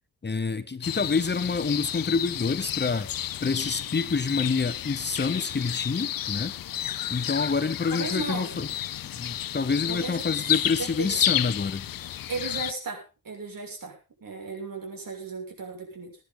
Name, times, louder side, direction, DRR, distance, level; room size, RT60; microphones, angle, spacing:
voice 1, 0.2-3.1 3.4-6.5 7.1-8.7 9.2-11.8, left 4 dB, 30° left, 12 dB, 1.3 m, -27 dB
sound 1, 0.8-12.7, left 11 dB, 70° left, 0.7 m, -31 dB
voice 2, 7.9-8.6 9.9-11.2 12.3-16.2, right 3 dB, 70° right, 1 dB, 6.7 m, -36 dB
22.0 x 10.0 x 3.9 m, 0.31 s
wide cardioid pair, 125°, 35 cm